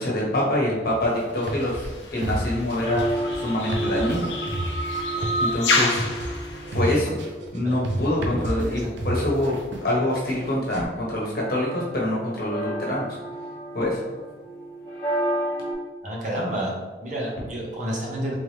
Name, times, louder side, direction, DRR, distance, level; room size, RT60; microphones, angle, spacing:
voice 1, 0.0-1.8 2.1-4.3 5.4-6.1 6.7-7.1 7.5-13.2 13.7-14.0, left 1 dB, 55° left, -4 dB, 1.1 m, -25 dB
sound 1, 0.9-10.8, right 1 dB, 85° right, 0.6 m, -31 dB
sound 2, 1.4-7.0, left 2 dB, 80° left, 0.6 m, -29 dB
sound 3, 2.8-15.7, right 1 dB, 30° left, 1.5 m, -33 dB
voice 2, 8.6-9.0 16.0-18.3, right 1 dB, 45° right, -4 dB, 0.9 m, -30 dB
3.5 x 3.0 x 3.2 m, 1.3 s
head